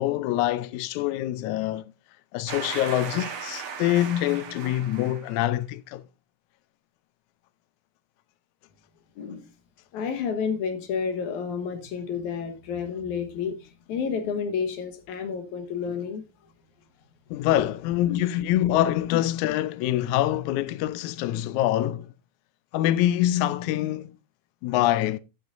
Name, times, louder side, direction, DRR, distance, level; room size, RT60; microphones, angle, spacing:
voice 1, 0.0-1.9 2.3-6.0 17.3-22.1 22.7-24.2 24.6-25.2, left 13 dB, 90° left, 1.6 m, -25 dB
sound 1, 2.5-5.4, right 6 dB, 55° right, 2.3 m, -37 dB
voice 2, 9.2-9.5 9.9-16.2 18.1-18.2, left 6 dB, 65° left, 2.5 m, -30 dB
11.0 x 10.5 x 2.6 m
omnidirectional pair, 4.1 m